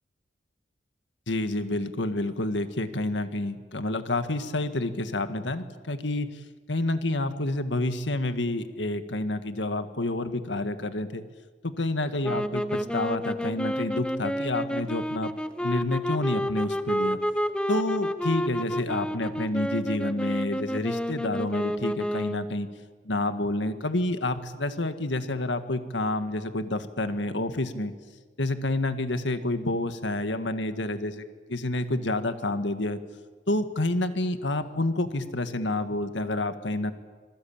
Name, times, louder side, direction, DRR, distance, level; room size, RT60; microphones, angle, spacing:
voice 1, 1.3-6.4 6.7-11.2 11.6-15.3 15.6-17.2 17.7-22.7 23.0-27.9 28.4-33.0 33.5-36.9, left 2 dB, 90° left, 9 dB, 1.8 m, -29 dB
sound 1, 12.2-22.6, equal, 5° left, 0.9 m, -30 dB
26.0 x 21.5 x 8.8 m, 1.4 s
head